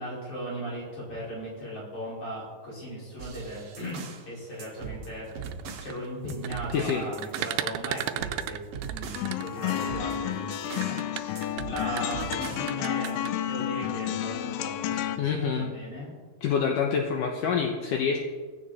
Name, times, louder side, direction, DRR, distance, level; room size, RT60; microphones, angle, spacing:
voice 1, 0.0-5.5 5.8-8.6 8.9-11.0 11.7-16.1, equal, 50° left, -6 dB, 6.4 m, -37 dB
sound 1, 3.2-4.3 4.6-5.9 6.3-7.6 8.0-11.0 11.3-12.7 13.0-13.1, right 5 dB, 55° right, 2.1 m, -41 dB
sound 2, 5.3-10.0 10.7-13.3, right 13 dB, 90° right, 2.5 m, -35 dB
sound 3, 9.1-15.2, left 11 dB, 90° left, 2.7 m, -31 dB
voice 2, 15.2-15.7 16.4-18.2, left 6 dB, 70° left, 2 dB, 2.4 m, -26 dB
16.5 x 15.5 x 4.2 m, 1.5 s
omnidirectional pair, 4.4 m